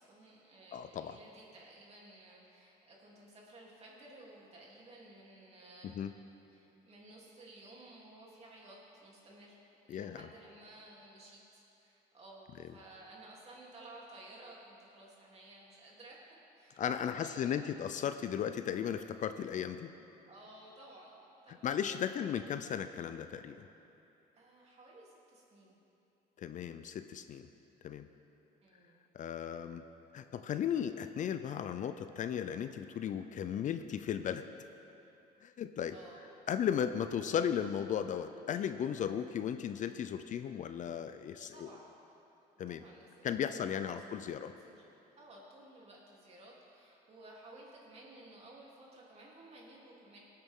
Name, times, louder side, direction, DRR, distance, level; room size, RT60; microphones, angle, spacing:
voice 1, 0.0-6.1 6.5-9.6 9.9-17.8 20.3-21.2 21.4-21.8 24.3-25.7 28.6-29.0 35.9-36.3 41.5-41.9 42.7-44.8 45.2-50.2, right 2 dB, 40° right, -4 dB, 3.2 m, -55 dB
voice 2, 0.7-1.2 5.9-6.1 9.9-10.2 16.8-19.9 21.5-23.7 26.4-27.5 27.8-28.1 29.1-29.8 30.1-34.4 35.4-36.0 36.5-41.7 42.6-42.8 43.2-44.5, left 8 dB, 50° left, 10 dB, 0.5 m, -36 dB
21.0 x 8.9 x 3.8 m, 2.9 s
cardioid pair, 110°, 17 cm